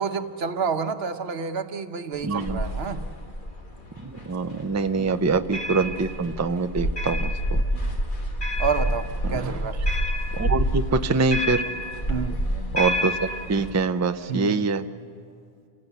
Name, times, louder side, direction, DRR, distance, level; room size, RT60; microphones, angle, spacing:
voice 1, 0.0-3.0 5.0-5.2 7.7-8.1 8.6-9.8 12.1-12.5 14.3-14.7, right 5 dB, 80° right, 9 dB, 1.2 m, -29 dB
sound 1, 2.1-13.7, equal, 55° left, 2.1 m, -28 dB
voice 2, 2.3-2.6 4.3-7.3 9.3-9.5 10.4-11.6 12.7-13.1 13.5-14.8, right 4 dB, 20° right, 9 dB, 0.5 m, -24 dB
28.5 x 16.5 x 8.2 m, 2.3 s
omnidirectional pair, 1.0 m